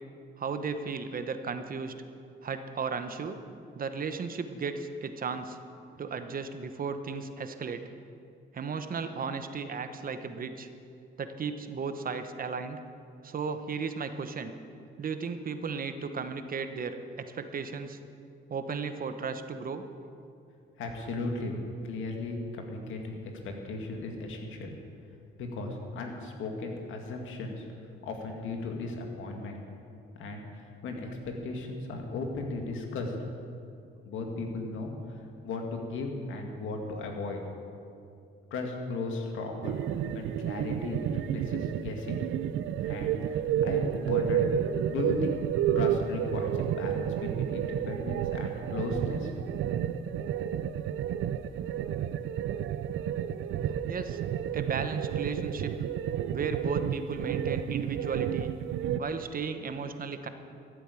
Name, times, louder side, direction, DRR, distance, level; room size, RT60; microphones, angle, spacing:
voice 1, 0.4-1.9 2.4-3.4 3.7-5.6 6.0-7.8 8.5-10.7 11.2-12.8 13.2-14.5 15.0-18.0 18.5-19.8 53.6-54.2 54.5-55.7 56.3-58.5 59.0-60.3, right 5 dB, 45° right, 9 dB, 1.1 m, -35 dB
voice 2, 20.8-21.5 21.8-24.7 25.4-27.7 28.0-29.6 30.1-33.1 34.0-37.4 38.5-39.8 40.1-42.2 42.8-44.5 44.9-49.6, left 3 dB, 80° left, 2 dB, 2.1 m, -36 dB
sound 1, 39.6-59.0, right 9 dB, 80° right, 0.6 m, -31 dB
13.5 x 8.2 x 8.4 m, 2.5 s
cardioid pair, 90°, 20 cm